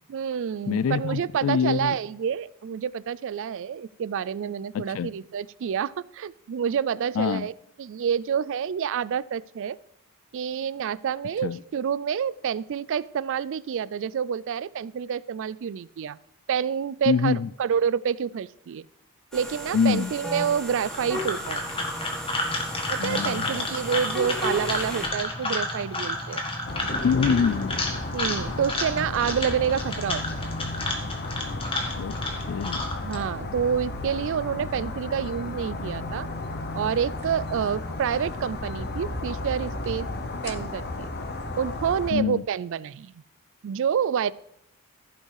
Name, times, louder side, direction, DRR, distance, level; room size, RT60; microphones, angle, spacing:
voice 1, 0.1-7.5 7.8-9.8 10.3-16.2 16.5-17.3 17.6-18.9 19.3-21.6 22.9-26.4 28.1-30.2 33.0-36.3 36.7-40.1 40.4-41.1 41.6-43.2 43.6-44.3, right 7 dB, 60° right, 0.3 m, -28 dB
voice 2, 0.7-2.0 4.7-5.1 7.2-7.5 11.4-11.6 17.1-17.5 19.7-20.1 23.0-23.6 27.0-27.8 32.0-32.1 32.5-32.9 42.1-42.4, left 6 dB, 60° left, 0.3 m, -25 dB
sound 1, 19.3-25.1, equal, ahead, 2.0 m, -35 dB
sound 2, 20.8-33.2, left 2 dB, 25° left, 1.6 m, -31 dB
sound 3, 26.6-42.1, left 2 dB, 45° left, 0.9 m, -33 dB
15.0 x 5.5 x 4.7 m
head